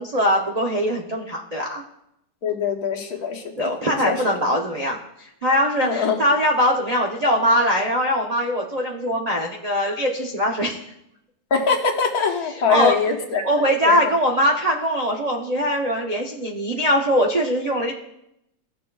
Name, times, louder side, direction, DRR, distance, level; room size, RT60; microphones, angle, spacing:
voice 1, 0.0-1.8 3.6-10.8 12.7-12.9 13.4-17.9, equal, 60° right, -1 dB, 0.4 m, -21 dB
voice 2, 2.4-3.7 4.0-4.4 5.8-6.2 11.5-14.1, left 5 dB, 60° left, 2 dB, 1.5 m, -23 dB
16.5 x 6.0 x 2.3 m, 0.82 s
omnidirectional pair, 1.9 m